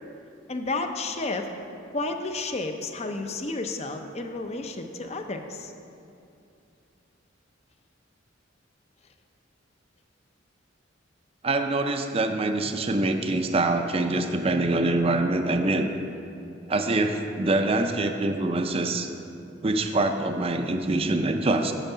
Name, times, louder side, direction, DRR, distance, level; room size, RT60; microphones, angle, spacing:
voice 1, 0.5-1.5 1.9-5.7, left 3 dB, 35° left, 6 dB, 0.6 m, -31 dB
voice 2, 11.4-15.9 16.7-19.1 19.6-21.7, right 2 dB, 30° right, 6 dB, 0.5 m, -24 dB
9.0 x 7.0 x 5.6 m, 2.6 s
head